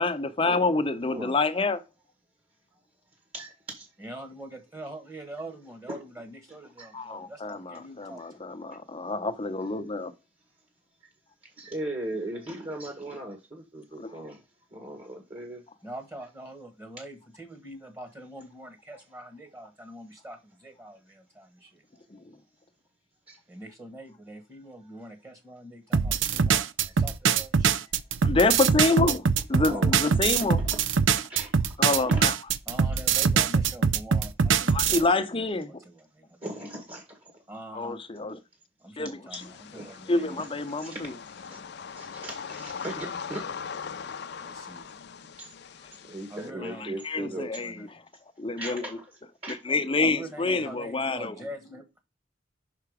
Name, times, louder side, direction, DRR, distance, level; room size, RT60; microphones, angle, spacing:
voice 1, 0.0-1.8 6.9-10.1 14.0-14.1 22.1-22.4 28.2-29.2 29.5-30.6 31.8-32.3 34.7-35.7 37.7-38.4 39.0-39.4 40.1-41.1 46.6-48.0 48.4-49.0 49.5-51.3, left 3 dB, 30° left, 0.8 m, -27 dB
voice 2, 1.1-1.4 3.3-3.9 5.9-6.1 6.8-6.9 11.6-14.4 14.7-15.6 23.3-23.4 29.6-29.9 30.7-30.8 31.1-31.7 32.1-32.3 36.4-37.2 39.7-40.0 40.3-40.5 40.8-41.0 41.5-41.6 42.0-43.4 45.4-45.5 46.0-47.6 48.6-49.1 49.4-49.6, right 1 dB, 30° right, 1.7 m, -38 dB
voice 3, 4.0-8.5 15.8-21.8 23.5-27.8 32.7-36.4 37.5-38.0 38.8-40.8 44.4-44.9 46.3-48.0 50.0-52.0, right 1 dB, 15° right, 1.5 m, -44 dB
sound 1, 25.9-35.0, right 6 dB, 75° right, 0.5 m, -23 dB
sound 2, 39.3-46.5, left 6 dB, 60° left, 0.5 m, -40 dB
5.8 x 5.7 x 4.9 m
head